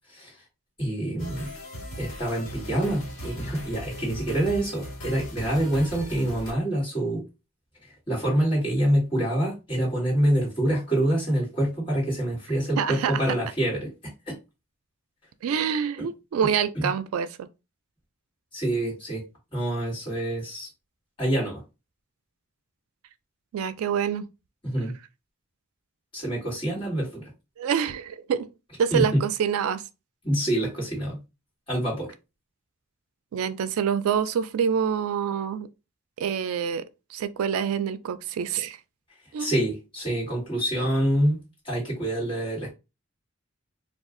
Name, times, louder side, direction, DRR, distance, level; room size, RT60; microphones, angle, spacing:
voice 1, 0.8-1.5 2.0-7.2 8.1-13.9 14.3-14.4 16.0-16.1 16.7-16.9 18.5-19.2 19.5-20.7 21.2-21.6 24.6-24.9 26.1-27.3 28.9-29.2 30.2-31.2 31.7-32.1 39.4-41.4 41.6-42.7, right 1 dB, 25° left, 1.5 m, -26 dB
sound 1, 1.2-6.5, equal, 75° left, 1.3 m, -38 dB
voice 2, 12.8-13.2 15.4-17.5 23.5-24.2 27.6-28.5 28.8-29.8 33.3-35.7 36.2-36.9 37.1-38.8 39.3-39.6, right 7 dB, 85° right, 0.3 m, -26 dB
2.3 x 2.3 x 3.6 m
head